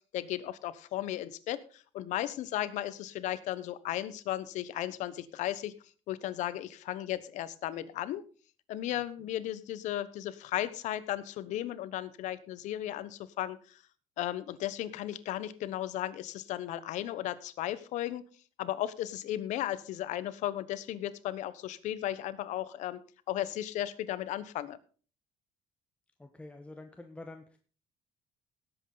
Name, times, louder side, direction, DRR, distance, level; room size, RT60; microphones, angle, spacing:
voice 1, 0.1-5.7 6.1-8.2 8.7-13.8 14.2-18.2 18.6-23.0 23.3-24.8, left 13 dB, 75° left, 16 dB, 1.1 m, -35 dB
voice 2, 26.2-27.6, left 2 dB, 10° left, 6 dB, 1.1 m, -47 dB
18.0 x 8.0 x 4.0 m, 0.39 s
cardioid pair, 125°, 13 cm